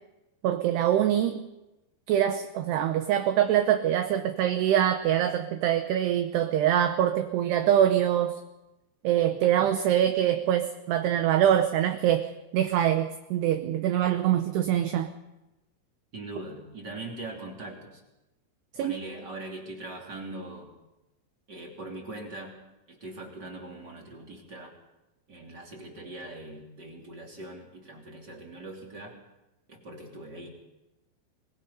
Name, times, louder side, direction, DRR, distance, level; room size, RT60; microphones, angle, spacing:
voice 1, 0.4-1.4 2.1-8.4 9.0-15.1 18.7-19.0, right 11 dB, 75° right, 7 dB, 2.6 m, -24 dB
voice 2, 16.1-18.0 18.8-20.7 21.5-22.6 22.9-24.7 25.3-29.1 29.7-30.5, right 2 dB, 25° right, 0 dB, 2.8 m, -41 dB
23.5 x 20.5 x 5.5 m, 0.98 s
omnidirectional pair, 5.5 m